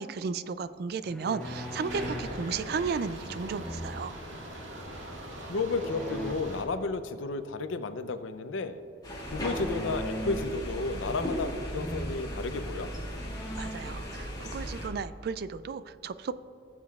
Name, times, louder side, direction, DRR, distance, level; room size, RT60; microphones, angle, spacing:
voice 1, 0.0-4.1 13.6-16.3, right 5 dB, 55° right, 14 dB, 0.3 m, -34 dB
sound 1, 1.0-2.4 3.5-4.3 5.7-6.4 9.3-10.7 11.0-11.5 11.8-12.2 12.8-12.9 13.2-14.0, equal, 5° left, 0.5 m, -39 dB
sound 2, 1.4-6.6, right 1 dB, 80° right, 1.8 m, -40 dB
voice 2, 5.5-8.8 9.3-12.9, left 3 dB, 85° left, 10 dB, 0.6 m, -32 dB
sound 3, 9.0-14.9, equal, 20° left, 2.4 m, -37 dB
18.0 x 7.3 x 2.4 m, 2.9 s
head